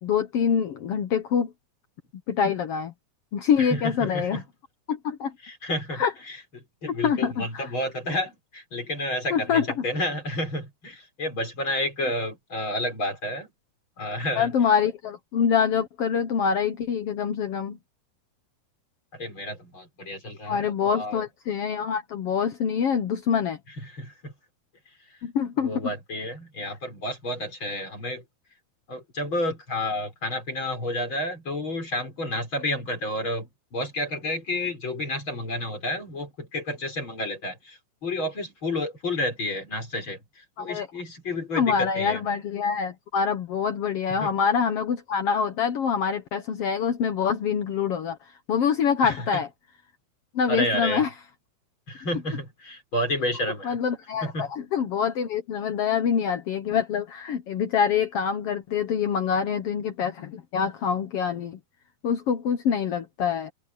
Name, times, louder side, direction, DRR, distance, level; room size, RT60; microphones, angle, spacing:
voice 1, 0.0-1.5 2.3-2.9 3.3-4.4 4.9-5.3 5.9-6.1 6.9-7.7 9.3-9.8 14.3-17.8 20.5-23.6 25.2-25.9 26.7-26.8 40.6-40.9 41.5-49.5 50.3-51.1 53.6-61.6 62.0-63.5, left 7 dB, 85° left, 1.3 m, -25 dB
voice 2, 3.6-4.4 5.4-6.4 6.8-13.5 14.0-14.5 19.1-20.7 20.9-21.2 23.9-24.3 25.6-28.2 28.9-42.2 44.2-44.3 49.0-49.1 50.5-51.0 51.9-53.8 54.2-54.5, left 1 dB, 30° left, 6.4 m, -30 dB
omnidirectional pair, 4.4 m